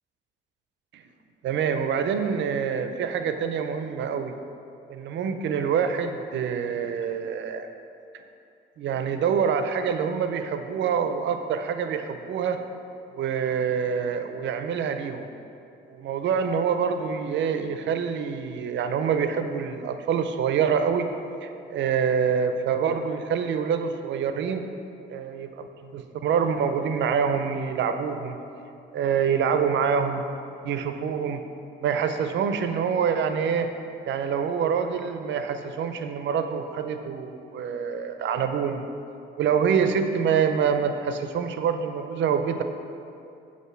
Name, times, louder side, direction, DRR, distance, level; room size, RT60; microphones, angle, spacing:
voice 1, 1.4-4.3 4.9-7.7 8.8-12.6 13.1-15.3 15.9-21.1 21.4-24.6 25.1-28.4 28.9-30.2 30.6-31.4 31.8-33.7 34.1-38.9 39.4-42.6, right 7 dB, 70° right, 8 dB, 0.5 m, -26 dB
8.0 x 2.7 x 5.9 m, 2.6 s
cardioid pair, 90°, 20 cm